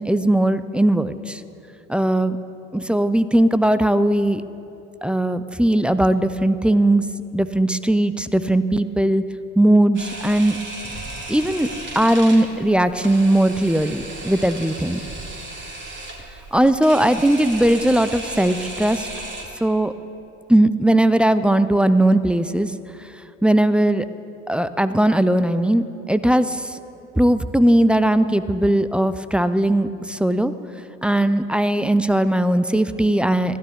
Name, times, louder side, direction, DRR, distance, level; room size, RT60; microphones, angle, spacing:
voice 1, 0.0-1.4 1.9-2.4 2.7-4.4 5.0-7.0 7.3-9.2 9.6-10.6 11.3-11.7 12.0-15.0 16.5-19.1 19.6-19.9 20.5-22.7 23.4-24.1 24.5-26.8 27.2-30.5 31.0-33.6, right 1 dB, 5° right, 13 dB, 0.5 m, -18 dB
Camera, 9.9-19.4, right 2 dB, 30° right, 3.3 m, -35 dB
22.0 x 15.5 x 3.6 m, 2.8 s
figure-of-eight pair, 60°, 39 cm